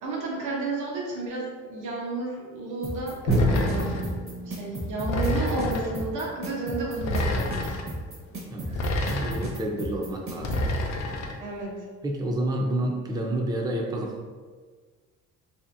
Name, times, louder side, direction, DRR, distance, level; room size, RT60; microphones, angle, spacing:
voice 1, 0.0-3.2 3.4-4.0 4.5-7.8 8.7-8.8 11.4-11.7, right 2 dB, 85° right, -3 dB, 0.8 m, -32 dB
sound 1, 2.8-10.6, right 1 dB, 45° right, 0.7 m, -35 dB
Drum, 3.3-7.3, right 1 dB, 85° left, 0.8 m, -31 dB
sound 2, 3.3-4.2 5.1-6.0 7.0-7.9 8.7-9.6 10.4-11.4, left 1 dB, 65° left, 0.5 m, -28 dB
voice 2, 8.5-10.6 12.0-14.2, right 1 dB, 15° right, 0 dB, 0.4 m, -29 dB
2.7 x 2.5 x 2.5 m, 1.5 s
cardioid pair, 90°, 30 cm